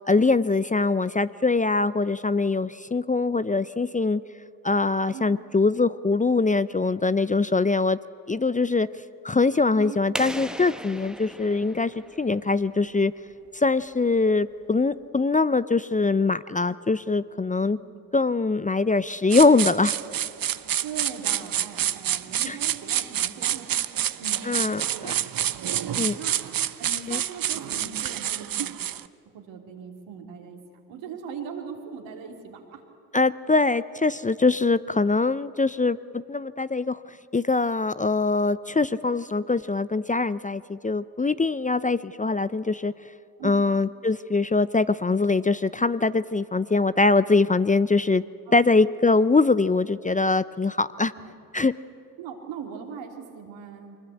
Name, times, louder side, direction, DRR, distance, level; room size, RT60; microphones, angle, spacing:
voice 1, 0.1-4.2 4.6-8.0 8.3-8.9 9.2-13.1 13.5-17.8 18.1-19.9 22.5-22.6 24.5-25.1 26.0-26.2 27.1-27.2 33.1-37.0 37.3-42.9 43.4-48.2 48.5-51.1 51.5-51.7, left 3 dB, 15° left, 15 dB, 0.6 m, -23 dB
voice 2, 9.7-10.0 17.7-18.0 20.8-24.5 24.9-25.2 25.6-25.8 26.2-26.4 26.8-28.7 29.3-30.6 30.9-32.8 43.4-43.6 48.5-48.7 51.1-51.3 52.2-54.0, right 7 dB, 80° right, 2 dB, 3.0 m, -40 dB
sound 1, 10.1-12.8, equal, ahead, 1.2 m, -37 dB
sound 2, 19.3-29.0, right 10 dB, 50° right, 0.9 m, -28 dB
24.5 x 20.5 x 8.4 m, 2.4 s
hypercardioid pair, 40°, 45 cm